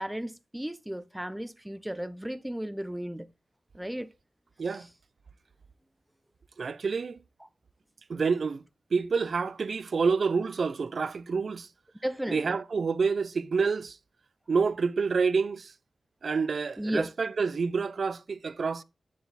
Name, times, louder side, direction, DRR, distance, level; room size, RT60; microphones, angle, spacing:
voice 1, 0.0-3.3 3.7-4.1 7.4-7.5 12.0-12.6 16.8-17.1, right 1 dB, 5° right, 0.5 m, -34 dB
voice 2, 6.6-7.2 8.1-8.6 8.9-11.7 12.3-14.0 14.5-15.7 16.2-18.8, right 5 dB, 60° right, 0.4 m, -28 dB
9.4 x 3.9 x 4.0 m
wide cardioid pair, 120°, 0 cm